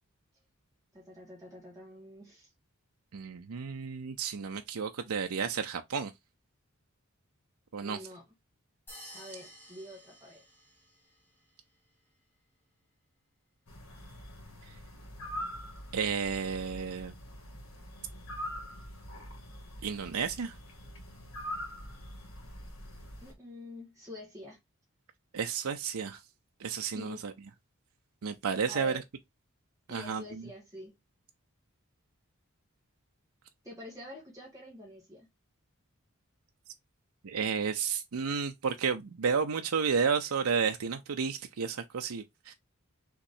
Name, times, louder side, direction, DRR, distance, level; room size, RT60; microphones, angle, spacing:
voice 1, 0.9-2.5 7.8-8.2 9.1-10.4 23.2-24.6 26.9-27.2 28.7-29.0 29.9-31.0 33.6-35.3, left 1 dB, 15° right, 1.5 m, -47 dB
voice 2, 3.1-6.1 7.7-8.0 15.9-17.1 19.8-20.6 25.3-26.2 26.6-27.3 28.2-29.0 29.9-30.4 37.2-42.5, right 6 dB, 85° right, 0.5 m, -32 dB
sound 1, 8.9-11.2, equal, 10° left, 1.4 m, -51 dB
sound 2, 13.7-23.3, equal, 80° left, 2.3 m, -44 dB
5.8 x 3.1 x 2.7 m
head